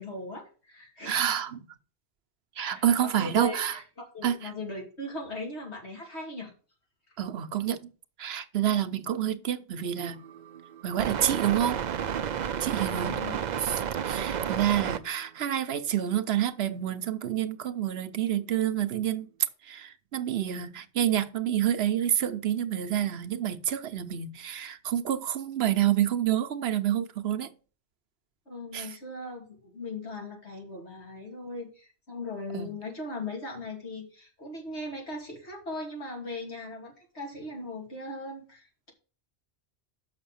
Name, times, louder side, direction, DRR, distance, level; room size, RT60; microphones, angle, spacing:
voice 1, 0.0-1.4 2.6-6.5 13.0-13.4 28.5-38.9, left 2 dB, 75° left, 3.2 m, -39 dB
voice 2, 1.1-1.7 2.6-3.8 4.2-4.5 7.2-7.9 8.2-10.2 10.8-11.8 12.6-13.1 13.6-19.3 19.6-27.5 28.7-28.9 32.5-32.7, right 10 dB, 70° right, 0.9 m, -28 dB
sound 1, 10.0-15.0, right 8 dB, 50° right, 0.6 m, -32 dB
6.6 x 6.0 x 6.9 m
omnidirectional pair, 1.1 m